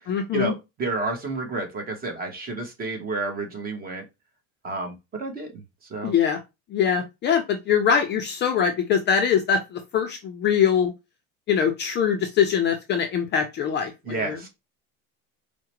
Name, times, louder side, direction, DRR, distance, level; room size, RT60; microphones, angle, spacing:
voice 1, 0.1-0.5 6.0-6.4 6.7-10.9 11.5-14.4, left 7 dB, 30° left, 4 dB, 0.5 m, -23 dB
voice 2, 0.8-4.0 4.6-5.6 5.9-6.1 14.1-14.5, right 3 dB, 25° right, 3 dB, 1.0 m, -30 dB
4.6 x 2.2 x 2.9 m, 0.23 s
cardioid pair, 140°, 36 cm